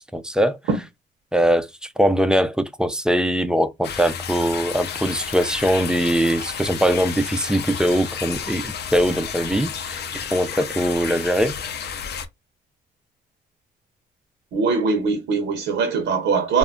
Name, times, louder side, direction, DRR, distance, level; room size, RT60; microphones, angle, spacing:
voice 1, 0.1-0.6 1.3-10.0 10.3-11.6, equal, 5° right, 0.3 m, -21 dB
sound 1, 3.8-12.3, left 7 dB, 55° left, 0.5 m, -31 dB
voice 2, 14.5-16.6, right 4 dB, 75° right, 0.7 m, -21 dB
2.2 x 2.1 x 3.6 m
cardioid pair, 90°, 20 cm